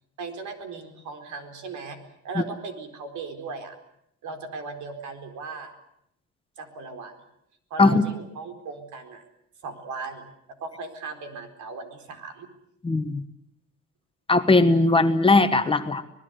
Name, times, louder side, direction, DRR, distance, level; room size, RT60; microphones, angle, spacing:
voice 1, 0.2-2.0 2.2-3.8 4.2-5.7 6.6-7.1 7.7-9.2 9.6-10.3 10.6-12.5, right 4 dB, 75° right, 7 dB, 4.4 m, -37 dB
voice 2, 12.8-13.2 14.3-16.0, left 3 dB, 15° left, 8 dB, 1.3 m, -19 dB
25.5 x 20.0 x 8.0 m, 0.76 s
cardioid pair, 130°, 30 cm